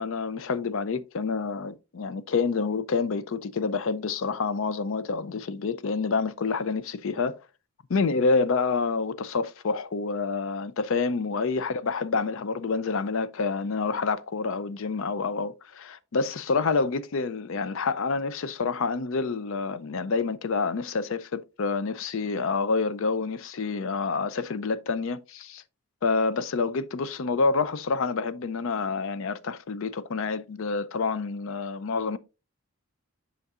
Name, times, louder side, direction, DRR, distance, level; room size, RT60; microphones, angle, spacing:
voice 1, 0.0-7.4 7.9-25.6 26.0-32.2, left 4 dB, 70° left, 0.5 m, -28 dB
8.1 x 5.8 x 2.4 m
head